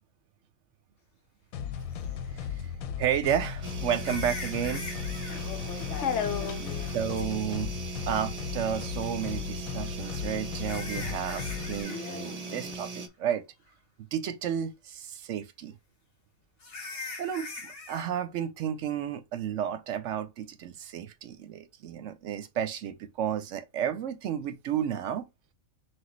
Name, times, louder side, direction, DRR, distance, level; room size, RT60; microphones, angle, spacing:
sound 1, 1.5-11.8, left 7 dB, 85° left, 1.0 m, -36 dB
sound 2, 2.0-2.1 3.9-5.4 7.1-7.3 9.8-12.0 12.2-12.6 13.0-13.1 13.7-13.8 16.6-18.1, left 3 dB, 45° left, 1.3 m, -41 dB
voice 1, 3.0-4.9 6.9-7.8 8.1-13.4 14.1-15.7 17.2-25.3, right 9 dB, 70° right, 0.8 m, -32 dB
sound 3, 3.6-13.1, right 4 dB, 55° right, 0.4 m, -40 dB
voice 2, 5.3-7.0 11.0-11.3 11.8-12.7, left 7 dB, 65° left, 0.9 m, -35 dB
6.0 x 2.3 x 3.0 m
omnidirectional pair, 1.4 m